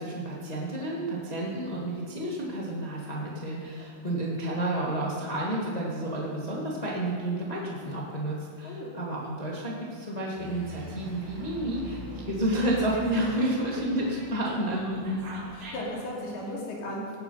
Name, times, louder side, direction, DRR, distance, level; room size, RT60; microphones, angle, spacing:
voice 1, 0.0-12.0 12.2-15.2, right 1 dB, 55° left, -4 dB, 0.4 m, -30 dB
Dog, 10.4-16.0, equal, 65° right, 4.4 m, -42 dB
voice 2, 15.5-17.0, left 1 dB, 70° left, -4 dB, 5.0 m, -36 dB
17.0 x 9.5 x 5.7 m, 2.3 s
omnidirectional pair, 4.6 m